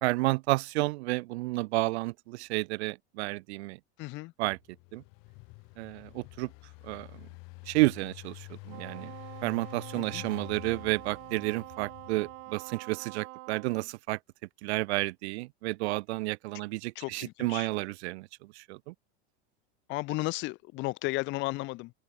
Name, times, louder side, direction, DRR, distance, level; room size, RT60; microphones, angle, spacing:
voice 1, 0.0-3.8 4.4-4.6 4.9-5.0 5.8-6.5 6.9-7.1 7.7-9.1 9.4-14.2 14.6-18.3 18.7-18.9, right 21 dB, 85° right, 0.8 m, -31 dB
voice 2, 4.0-4.3 10.0-10.2 17.0-17.7 19.9-21.9, left 22 dB, 35° left, 0.6 m, -34 dB
Engine, 4.6-12.6, left 31 dB, 55° left, 5.8 m, -48 dB
Wind instrument woodwind instrument, 8.7-13.7, right 30 dB, 50° right, 2.9 m, -46 dB
open air
supercardioid pair, 155°, 32 cm